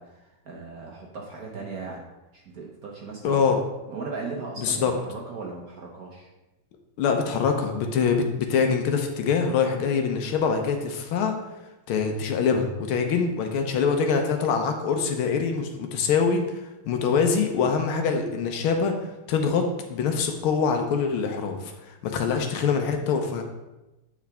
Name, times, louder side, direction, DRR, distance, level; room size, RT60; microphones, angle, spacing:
voice 1, 0.0-2.0 2.3-3.5 3.9-6.3, right 4 dB, 55° right, -1 dB, 1.1 m, -37 dB
voice 2, 3.2-3.6 4.6-4.9 7.0-11.3 11.9-16.4 16.9-19.0 19.3-23.4, left 5 dB, 75° left, 5 dB, 1.6 m, -24 dB
8.7 x 4.9 x 3.5 m, 1.0 s
omnidirectional pair, 2.4 m